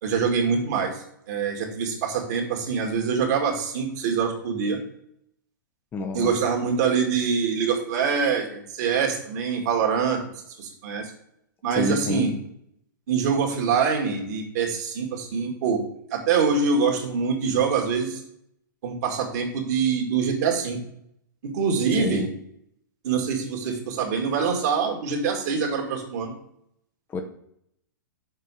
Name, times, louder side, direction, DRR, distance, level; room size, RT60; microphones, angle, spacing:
voice 1, 0.0-4.8 6.1-10.2 10.6-11.1 11.6-12.3 13.1-15.8 16.1-18.2 18.8-20.8 21.4-22.3 23.0-26.3, right 6 dB, 55° right, 2 dB, 2.2 m, -24 dB
voice 2, 5.9-6.4 11.7-12.3 21.9-22.3 27.1-27.2, left 3 dB, 20° left, 5 dB, 0.8 m, -28 dB
6.7 x 4.6 x 6.2 m, 0.73 s
hypercardioid pair, 130°, 11 cm